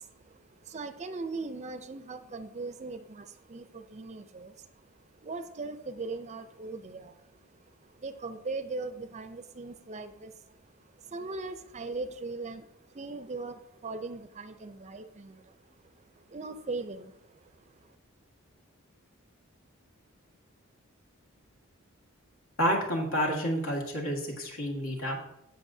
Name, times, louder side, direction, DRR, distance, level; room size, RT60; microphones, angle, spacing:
voice 1, 0.0-4.9 5.2-15.6 15.8-17.4 17.7-17.9, right 3 dB, 35° right, 10 dB, 0.5 m, -40 dB
voice 2, 22.6-25.2, equal, 70° left, 1 dB, 1.8 m, -29 dB
15.5 x 5.3 x 2.7 m, 0.81 s
head